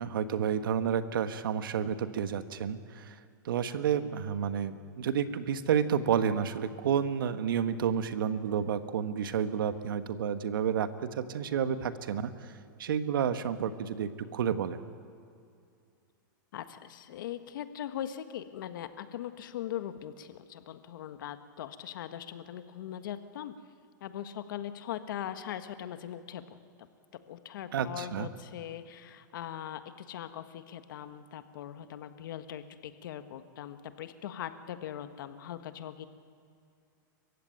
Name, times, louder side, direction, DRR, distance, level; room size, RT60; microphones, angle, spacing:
voice 1, 0.0-3.2 3.4-12.3 12.8-14.8 27.7-28.3, right 8 dB, 80° right, 10 dB, 1.4 m, -30 dB
voice 2, 16.5-23.5 24.0-26.6 27.3-36.1, left 10 dB, 70° left, 9 dB, 1.5 m, -40 dB
29.0 x 15.5 x 9.2 m, 2.4 s
hypercardioid pair, 140°, 11 cm